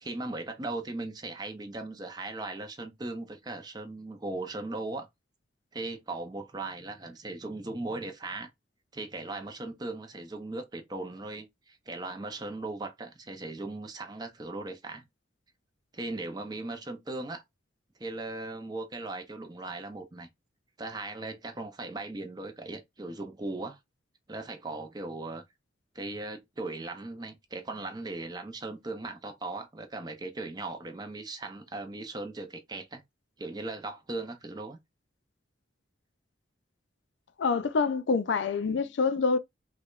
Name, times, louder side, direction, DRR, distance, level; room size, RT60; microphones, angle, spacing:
voice 1, 0.0-5.1 5.7-8.5 8.9-15.1 15.9-17.4 18.0-20.3 20.8-23.8 24.3-25.4 25.9-33.0 33.4-34.8, right 2 dB, 20° right, 0.5 m, -38 dB
voice 2, 37.4-39.4, left 4 dB, 70° left, 0.4 m, -26 dB
4.6 x 2.2 x 2.4 m
head